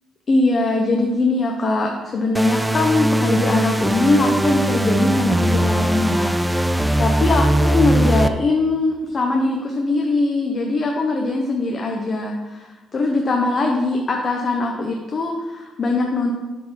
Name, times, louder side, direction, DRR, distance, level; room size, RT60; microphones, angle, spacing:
voice 1, 0.3-16.3, left 2 dB, 40° left, 1 dB, 0.9 m, -21 dB
sound 1, 2.3-8.3, right 1 dB, 10° right, 0.4 m, -19 dB
7.0 x 4.6 x 5.7 m, 1.2 s
cardioid pair, 90°, 0 cm